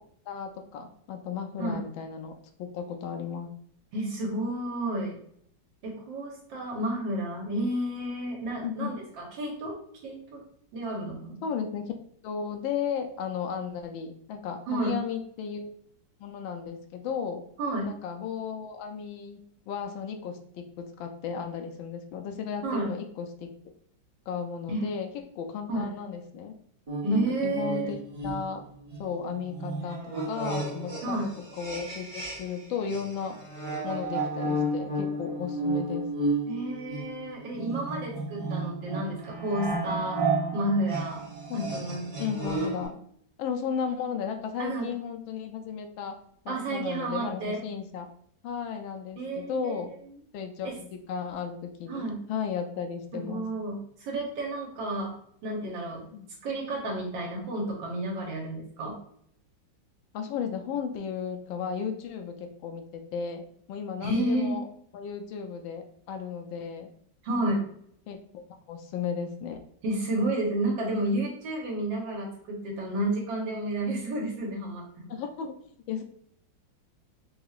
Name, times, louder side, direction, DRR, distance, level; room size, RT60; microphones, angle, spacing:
voice 1, 0.3-3.5 8.6-9.0 11.4-11.8 12.2-15.7 16.2-17.4 17.9-23.5 24.3-25.1 25.4-26.5 27.1-28.0 28.2-28.6 29.0-30.0 30.3-31.2 31.6-33.4 33.8-36.1 39.9-40.1 41.5-43.0 43.4-46.2 46.4-48.1 48.4-49.9 50.3-53.5 56.1-56.3 60.1-64.6 64.9-66.9 68.1-68.2 68.7-69.6 75.1-75.5 75.9-76.0, left 7 dB, 80° left, 4 dB, 1.3 m, -34 dB
voice 2, 3.9-5.2 5.8-9.8 10.0-10.4 10.7-11.4 14.7-15.0 17.6-17.9 22.6-22.9 24.7-24.9 25.7-26.0 27.0-27.9 31.0-31.3 36.5-40.2 40.5-41.2 41.5-42.1 44.6-44.9 46.5-47.6 49.2-49.8 50.6-50.7 51.9-52.2 53.1-55.1 55.4-56.0 56.4-59.0 64.0-64.6 67.2-67.6 69.8-75.2, right 1 dB, 75° right, -1 dB, 1.6 m, -31 dB
sound 1, 26.9-32.6 32.9-42.9, right 2 dB, 35° right, 0.5 m, -33 dB
4.8 x 2.8 x 2.4 m, 0.65 s
omnidirectional pair, 2.1 m